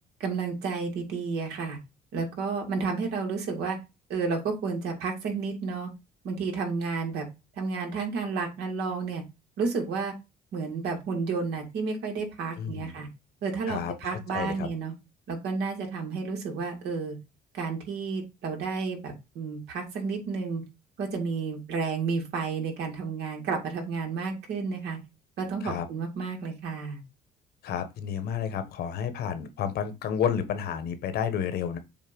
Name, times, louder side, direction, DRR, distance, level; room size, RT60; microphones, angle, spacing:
voice 1, 0.2-1.8 2.1-3.8 4.1-5.9 6.2-7.3 7.6-9.2 9.6-10.1 10.5-13.1 13.4-14.9 15.3-17.2 17.5-20.6 21.0-25.0 25.4-27.0, right 4 dB, 80° right, 2.4 m, -31 dB
voice 2, 12.6-13.0 13.7-14.7 25.6-25.8 27.6-31.8, left 8 dB, 70° left, 1.3 m, -31 dB
7.2 x 2.9 x 5.3 m
cardioid pair, 110°, 17 cm